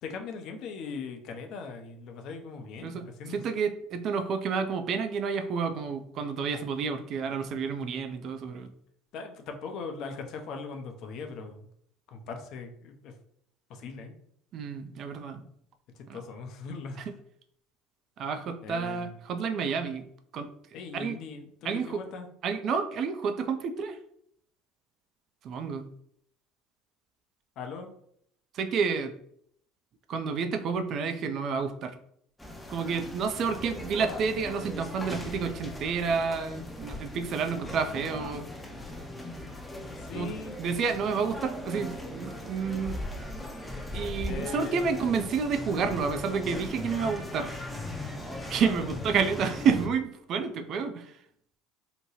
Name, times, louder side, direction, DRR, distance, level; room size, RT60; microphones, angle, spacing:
voice 1, 0.0-3.4 9.1-11.7 12.1-13.1 13.7-14.2 16.1-17.0 18.6-19.2 20.7-22.3 27.6-27.9 40.0-40.6 44.3-45.0, left 4 dB, 55° left, 5 dB, 0.5 m, -40 dB
voice 2, 2.8-8.7 14.5-15.4 16.1-16.2 18.2-20.0 20.3-20.5 20.9-21.1 21.6-22.0 22.4-24.0 25.4-25.9 28.5-29.1 30.1-31.9 32.7-38.5 40.1-40.3 40.6-43.0 43.9-47.5 48.5-51.1, right 5 dB, 50° right, 7 dB, 0.4 m, -30 dB
sound 1, 32.4-49.9, left 1 dB, 10° left, 0.5 m, -39 dB
2.8 x 2.2 x 3.0 m, 0.68 s
figure-of-eight pair, 65°, 0 cm